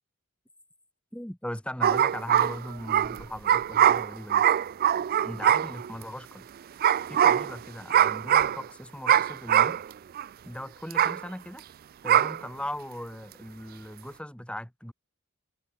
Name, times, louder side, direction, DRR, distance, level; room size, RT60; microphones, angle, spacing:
voice 1, 1.1-4.5 5.2-6.8 7.1-9.8 10.4-11.6 12.0-14.9, left 1 dB, 5° left, 2.2 m, -38 dB
sound 1, 1.8-6.0 6.8-7.6 7.9-8.6 9.1-9.8 10.1-10.2 10.9-11.2 12.1-12.4, right 10 dB, 45° right, 0.3 m, -22 dB
head